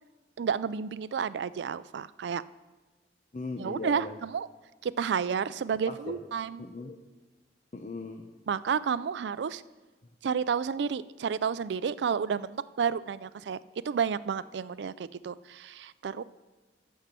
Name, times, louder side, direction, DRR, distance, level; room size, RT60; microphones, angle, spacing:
voice 1, 0.4-2.4 3.6-4.5 4.8-6.6 8.5-9.6 10.2-16.2, right 6 dB, 80° right, 17 dB, 0.4 m, -31 dB
voice 2, 3.3-4.1 5.9-6.2 6.6-7.0 7.7-8.3, left 3 dB, 40° left, 5 dB, 0.7 m, -38 dB
13.5 x 5.6 x 6.8 m, 1.2 s
head